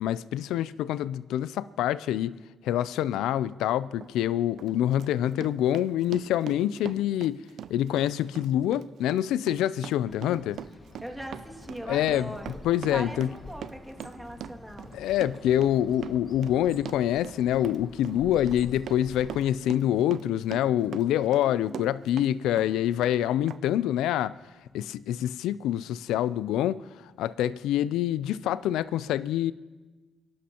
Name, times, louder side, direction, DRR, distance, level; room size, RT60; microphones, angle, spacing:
voice 1, 0.0-2.3 2.6-7.4 7.7-10.6 11.9-12.3 12.6-13.3 14.9-24.3 24.7-29.5, left 11 dB, 85° left, 0.3 m, -26 dB
Run, 4.0-4.1 4.6-22.3 22.6-23.2 23.5-23.6, right 9 dB, 75° right, 0.4 m, -42 dB
voice 2, 10.0-10.5 11.0-12.6 12.9-14.9 21.4-21.9, right 1 dB, 10° right, 2.2 m, -40 dB
Bird, 10.1-19.8, left 2 dB, 30° left, 1.4 m, -48 dB
27.5 x 11.5 x 2.9 m
supercardioid pair, 60°, 0 cm